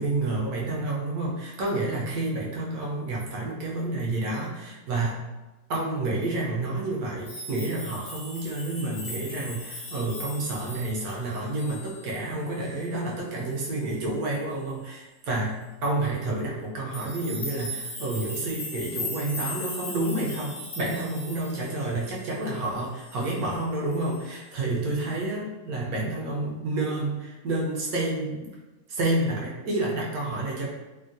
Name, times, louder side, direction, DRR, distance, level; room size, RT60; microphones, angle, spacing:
voice 1, 0.0-5.2 5.7-15.6 15.8-28.5 28.9-30.7, right 2 dB, 65° right, -3 dB, 0.9 m, -29 dB
sound 1, 7.3-12.2 12.5-12.9 13.5-13.7 16.9-22.6 23.0-23.5 23.9-24.3 24.9-25.1, left 2 dB, 60° left, 1.1 m, -39 dB
3.5 x 2.2 x 2.5 m, 1.1 s
omnidirectional pair, 2.0 m